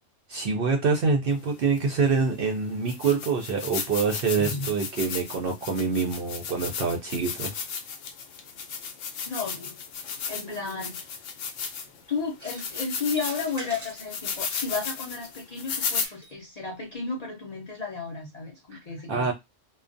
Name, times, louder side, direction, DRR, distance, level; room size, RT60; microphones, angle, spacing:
voice 1, 0.3-7.5 18.7-18.8 19.1-19.3, right 4 dB, 60° right, 0.6 m, -26 dB
sound 1, 1.8-1.9 2.5-2.6 2.9-12.0 12.5-16.1, left 6 dB, 75° left, 0.9 m, -34 dB
voice 2, 4.4-4.7 9.2-9.8 10.3-11.2 11.7-19.3, left 4 dB, 45° left, 0.5 m, -33 dB
sound 2, 12.3-12.8 13.1-14.1 14.5-15.0 15.7-16.3, right 1 dB, 15° right, 0.9 m, -43 dB
2.3 x 2.1 x 2.5 m
omnidirectional pair, 1.3 m